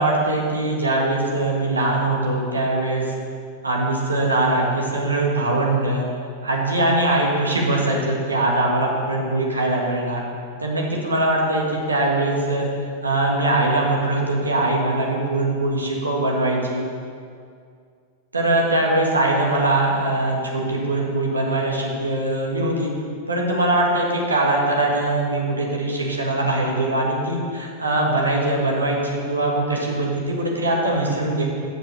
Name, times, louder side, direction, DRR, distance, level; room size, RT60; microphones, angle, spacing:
voice 1, 0.0-3.1 3.6-6.1 6.4-10.2 10.6-12.7 13.0-16.8 18.3-22.9 23.3-31.5, right 2 dB, 80° right, -2 dB, 1.6 m, -22 dB
7.3 x 6.7 x 6.7 m, 2.2 s
figure-of-eight pair, 90°, 0 cm